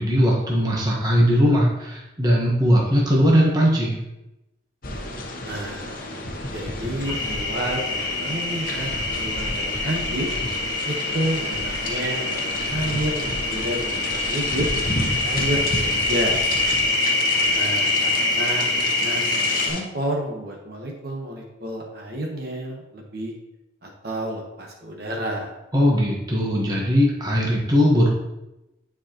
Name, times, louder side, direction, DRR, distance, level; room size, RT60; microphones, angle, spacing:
voice 1, 0.0-4.0 25.7-28.1, equal, 20° right, -3 dB, 1.2 m, -19 dB
sound 1, 4.8-19.8, left 2 dB, 50° left, 1.0 m, -31 dB
voice 2, 5.4-6.0 6.5-10.3 10.9-16.5 17.5-23.3 23.8-25.5, right 1 dB, 55° right, 0 dB, 1.3 m, -30 dB
sound 2, 7.0-19.7, left 2 dB, 20° left, 1.3 m, -25 dB
9.4 x 4.8 x 3.0 m, 0.93 s
head